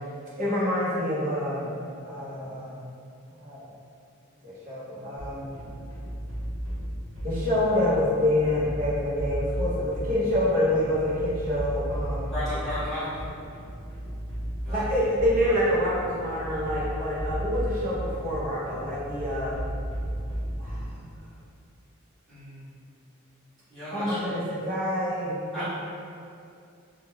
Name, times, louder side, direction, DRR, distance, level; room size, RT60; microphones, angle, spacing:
voice 1, 0.4-2.9 3.4-3.7 4.4-5.6 7.2-12.3 14.7-19.6 20.6-20.8 23.9-25.6, left 1 dB, 40° right, -8 dB, 0.6 m, -27 dB
sound 1, 5.2-21.1, equal, 65° right, 1.0 m, -34 dB
voice 2, 12.3-13.1 14.6-14.8 22.3-22.8 23.7-24.3 25.5-25.6, left 1 dB, ahead, -15 dB, 0.8 m, -34 dB
2.2 x 2.1 x 3.0 m, 2.5 s
head